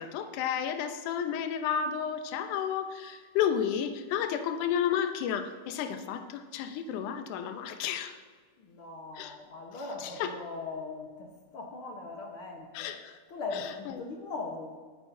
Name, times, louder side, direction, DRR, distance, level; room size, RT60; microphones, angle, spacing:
voice 1, 0.0-8.2 9.2-9.3 10.0-10.3 12.7-13.1 13.5-13.9, left 8 dB, 75° left, 7 dB, 2.2 m, -32 dB
voice 2, 8.6-12.9 13.3-14.8, left 3 dB, 60° left, 1 dB, 1.5 m, -40 dB
19.5 x 9.5 x 2.7 m, 1.5 s
omnidirectional pair, 3.7 m